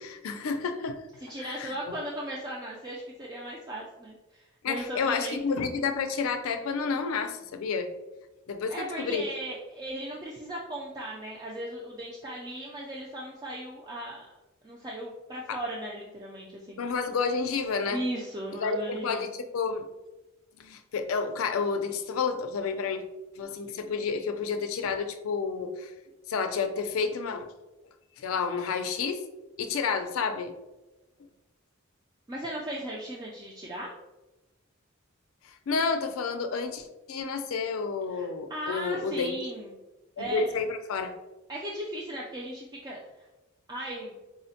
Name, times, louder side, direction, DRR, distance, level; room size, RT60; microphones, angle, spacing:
voice 1, 0.0-1.0 1.4-1.7 4.6-7.9 8.5-9.2 15.5-15.6 16.8-18.0 18.6-19.3 19.5-19.9 20.6-23.0 23.4-25.9 26.3-27.5 28.2-29.2 29.6-30.5 35.4-39.4 40.2-41.1, left 5 dB, 80° left, 7 dB, 0.4 m, -30 dB
voice 2, 1.2-5.4 8.7-14.3 14.6-16.8 17.9-19.3 32.3-33.9 38.1-39.7 40.2-40.4 41.5-43.3 43.7-44.2, right 1 dB, 20° right, -4 dB, 0.3 m, -37 dB
4.8 x 2.1 x 2.7 m, 1.0 s
head